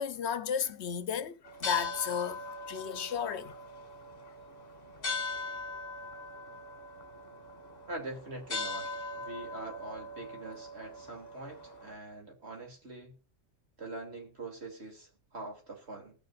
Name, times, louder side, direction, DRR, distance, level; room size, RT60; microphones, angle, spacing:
voice 1, 0.0-3.6, left 7 dB, 70° left, 1.0 m, -34 dB
sound 1, 1.5-11.9, left 2 dB, 35° left, 1.5 m, -41 dB
voice 2, 7.9-13.1 13.8-16.1, right 2 dB, 65° right, 3.0 m, -44 dB
20.0 x 6.7 x 2.4 m
omnidirectional pair, 1.2 m